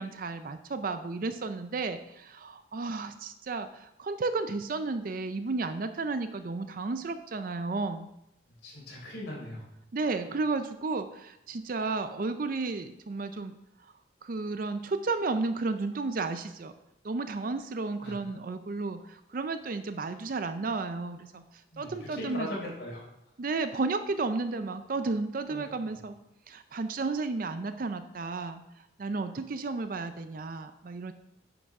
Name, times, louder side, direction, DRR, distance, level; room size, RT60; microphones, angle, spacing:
voice 1, 0.0-8.1 9.9-13.6 14.2-16.7 17.0-21.4 21.8-22.7 23.4-26.1 26.5-28.6 29.0-31.1, right 3 dB, 45° right, 10 dB, 0.4 m, -33 dB
voice 2, 8.6-9.6 18.0-18.1 21.7-23.0 25.5-25.9, left 1 dB, 60° left, -4 dB, 3.6 m, -39 dB
9.5 x 5.9 x 4.7 m, 0.84 s
head